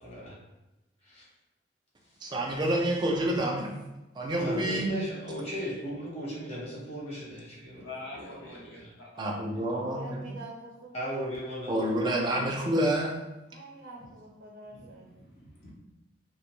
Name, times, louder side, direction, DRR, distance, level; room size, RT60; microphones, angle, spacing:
voice 1, 0.0-0.4 1.0-1.2 4.4-7.9 8.1-8.9 10.9-11.8, equal, 35° left, -6 dB, 0.9 m, -37 dB
voice 2, 2.2-3.7 4.2-4.9 9.2-10.2 11.7-13.2, right 1 dB, 25° right, -1 dB, 0.3 m, -28 dB
voice 3, 7.8-9.2 14.7-15.7, left 2 dB, 60° left, -3 dB, 0.7 m, -46 dB
voice 4, 9.5-11.3 13.5-15.1, right 2 dB, 70° right, -2 dB, 0.6 m, -45 dB
2.5 x 2.1 x 3.0 m, 1.0 s
head